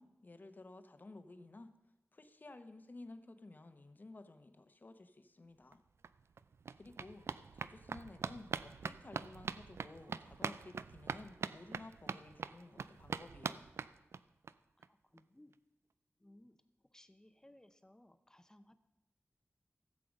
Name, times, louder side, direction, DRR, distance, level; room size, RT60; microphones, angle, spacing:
voice 1, 0.0-1.7 2.1-5.8 6.8-7.3 7.5-13.7, left 2 dB, 45° left, 9 dB, 1.0 m, -54 dB
sound 1, 5.7-5.8 6.0-14.5 14.8-14.9 15.2-15.3 15.5-15.6, right 5 dB, 85° right, 0.3 m, -44 dB
voice 2, 14.8-15.6 16.2-18.8, left 1 dB, 15° left, 10 dB, 0.8 m, -63 dB
15.0 x 7.6 x 5.2 m, 1.1 s
wide cardioid pair, 85°, 4 cm